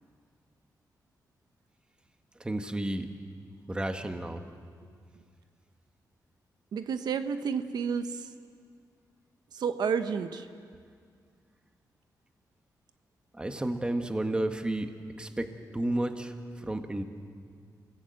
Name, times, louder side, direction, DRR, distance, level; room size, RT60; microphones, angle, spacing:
voice 1, 2.4-3.1 3.7-4.4 13.3-17.0, right 1 dB, 15° right, 6 dB, 1.5 m, -32 dB
voice 2, 6.7-8.3 9.5-10.5, right 6 dB, 80° right, 9 dB, 1.0 m, -31 dB
29.0 x 18.0 x 7.8 m, 2.1 s
wide cardioid pair, 120°, 7 cm